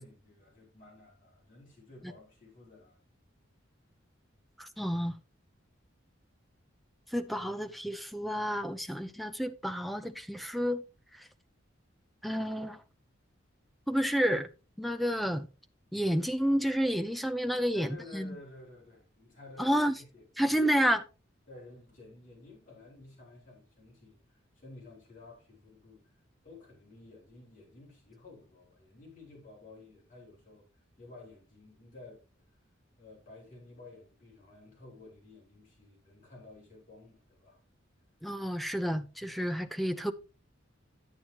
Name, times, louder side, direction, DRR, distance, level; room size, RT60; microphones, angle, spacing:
voice 1, 0.0-3.0 17.5-20.5 21.5-26.2 26.4-30.7 31.0-32.6 33.0-37.6, left 2 dB, 45° left, 4.7 m, -53 dB
voice 2, 4.6-5.2 7.1-10.8 12.2-12.8 13.9-14.5 14.8-15.5 15.9-18.4 19.6-19.9 20.4-21.0 38.2-40.1, equal, ahead, 0.6 m, -30 dB
9.6 x 9.0 x 2.9 m
head